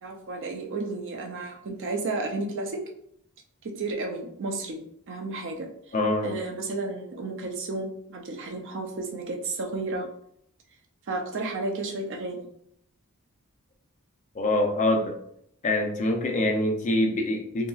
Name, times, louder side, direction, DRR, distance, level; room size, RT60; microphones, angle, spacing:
voice 1, 0.0-2.8 3.6-4.8 5.1-5.7 6.2-10.1 11.1-12.5, right 3 dB, 60° right, 2 dB, 0.5 m, -32 dB
voice 2, 5.9-6.3 14.4-15.1 15.6-17.7, left 1 dB, 35° left, 2 dB, 0.4 m, -25 dB
2.8 x 2.6 x 2.3 m, 0.69 s
head